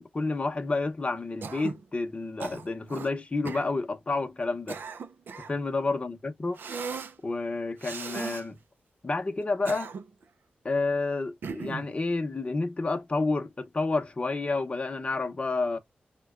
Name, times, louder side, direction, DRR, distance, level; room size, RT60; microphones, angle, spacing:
voice 1, 0.0-4.8 5.4-6.6 7.2-8.6 9.0-9.9 10.6-15.8, left 3 dB, 35° left, 0.7 m, -30 dB
Cough, 1.4-1.8 2.4-3.1 3.4-3.7 4.4-5.6 6.6-7.1 7.8-8.4 9.4-10.2 11.4-11.9, right 5 dB, 75° right, 0.4 m, -37 dB
5.4 x 2.2 x 2.4 m
cardioid pair, 65°, 3 cm